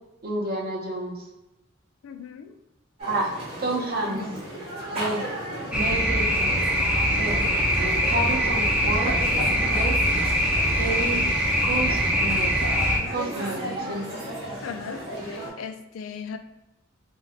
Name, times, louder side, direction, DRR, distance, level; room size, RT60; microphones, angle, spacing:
voice 1, 0.2-1.2 3.0-3.3 3.6-4.3 4.9-5.2 5.7-6.6 7.1-7.4 8.0-9.1 9.7-10.0 10.7-11.2 11.6-12.6 13.1-14.0, right 2 dB, 50° right, -2 dB, 0.6 m, -30 dB
voice 2, 2.0-2.6 14.6-16.4, left 6 dB, 80° left, 8 dB, 0.3 m, -38 dB
sound 1, 3.0-15.5, equal, 30° right, 0.9 m, -35 dB
sound 2, 5.7-13.0, equal, 5° right, 0.4 m, -23 dB
2.6 x 2.2 x 3.4 m, 0.97 s
head